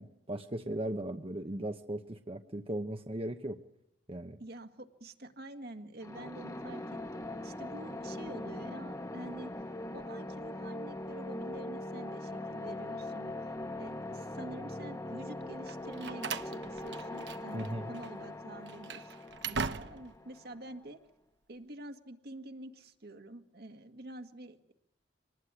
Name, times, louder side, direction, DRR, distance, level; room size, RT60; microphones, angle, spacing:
voice 1, 0.0-3.6 4.1-4.4 17.5-18.0, right 1 dB, 35° right, 6 dB, 0.9 m, -37 dB
voice 2, 4.4-9.5 9.9-19.2 19.5-21.0 21.5-24.7, right 1 dB, 60° right, 6 dB, 1.8 m, -47 dB
sound 1, 6.0-20.7, left 1 dB, 20° left, 1.2 m, -41 dB
Slam, 15.7-17.7 17.9-18.1 18.6-20.2, right 5 dB, 75° right, 1.1 m, -39 dB
25.5 x 19.5 x 9.7 m, 0.83 s
head